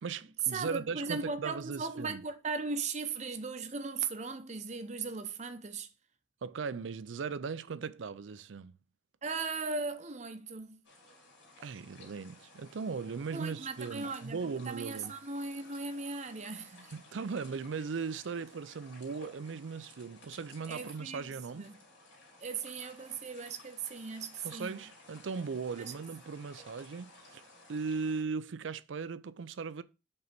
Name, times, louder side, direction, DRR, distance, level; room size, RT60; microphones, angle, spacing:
voice 1, 0.0-2.2 6.4-8.7 11.6-15.1 16.9-21.7 24.4-27.4 27.7-29.8, right 5 dB, 85° right, 0.5 m, -38 dB
voice 2, 0.5-5.9 9.2-10.8 13.3-14.4 14.7-17.2 20.7-21.3 21.5-21.8 22.4-24.8 25.8-25.9, right 4 dB, 40° right, 0.7 m, -38 dB
sound 1, 10.8-28.2, left 2 dB, 90° left, 3.0 m, -56 dB
5.5 x 4.0 x 5.8 m
head